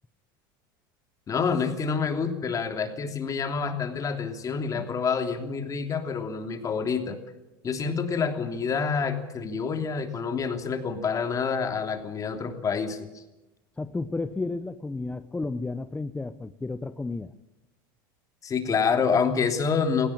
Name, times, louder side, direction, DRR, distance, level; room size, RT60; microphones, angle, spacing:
voice 1, 1.3-7.2 7.6-13.2 18.4-20.1, left 5 dB, 30° left, 6 dB, 3.1 m, -27 dB
voice 2, 13.8-17.3, left 3 dB, 10° left, 11 dB, 0.8 m, -32 dB
17.5 x 17.0 x 8.8 m, 1.0 s
supercardioid pair, 100°, 11 cm